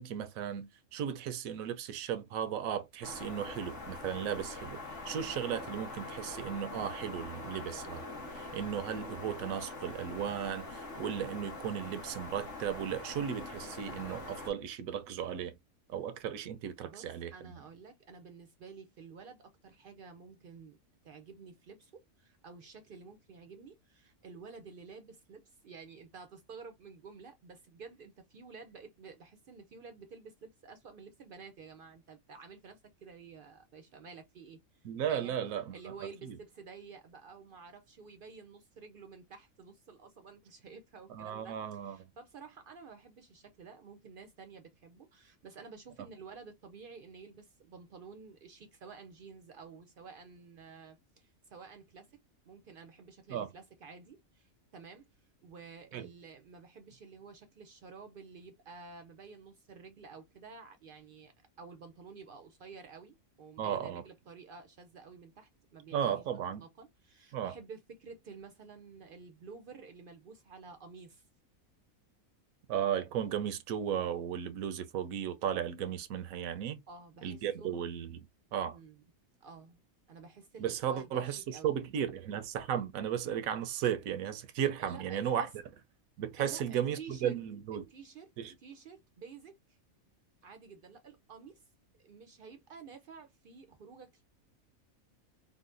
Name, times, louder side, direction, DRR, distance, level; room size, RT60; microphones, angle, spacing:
voice 1, 0.0-8.0 8.3-15.5 15.9-17.3 34.8-35.8 36.2-36.4 41.1-42.0 53.3-53.5 55.9-56.1 63.6-64.0 65.9-66.6 67.3-67.5 72.7-76.8 77.2-78.3 78.5-78.8 80.6-85.5 86.2-87.8 88.4-88.5, right 9 dB, 85° right, 1.0 m, -35 dB
sound 1, 3.0-14.5, left 2 dB, 60° left, 1.5 m, -44 dB
voice 2, 16.8-20.8 21.0-35.4 35.7-52.2 52.5-61.3 61.6-66.3 66.6-71.2 76.9-77.8 78.7-79.0 79.4-79.8 80.1-81.7 84.8-85.5 86.4-87.4 87.9-88.3 88.6-89.8 90.4-91.6 91.9-94.2, right 5 dB, 65° right, 0.5 m, -51 dB
3.8 x 2.1 x 2.5 m
omnidirectional pair, 1.4 m